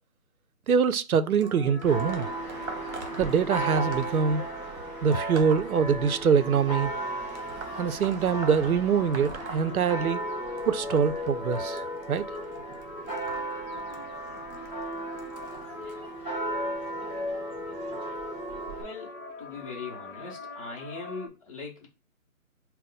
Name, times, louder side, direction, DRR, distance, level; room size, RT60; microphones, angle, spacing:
voice 1, 0.7-2.3 3.2-4.4 5.0-6.9 7.8-10.2 10.7-11.8 12.1-12.3, right 6 dB, 85° right, 0.6 m, -24 dB
sound 1, 1.4-21.3, left 3 dB, 60° left, 0.9 m, -40 dB
sound 2, 1.4-6.5 7.3-10.3 10.6-15.9 16.7-17.0 18.0-18.1 19.0-19.1 19.8-19.9, right 3 dB, 55° right, 1.0 m, -43 dB
Church bell, 1.9-18.8, right 3 dB, 10° right, 1.4 m, -36 dB
voice 2, 18.8-21.9, left 4 dB, 25° left, 0.8 m, -40 dB
4.0 x 2.1 x 3.9 m
hypercardioid pair, 170°, 42 cm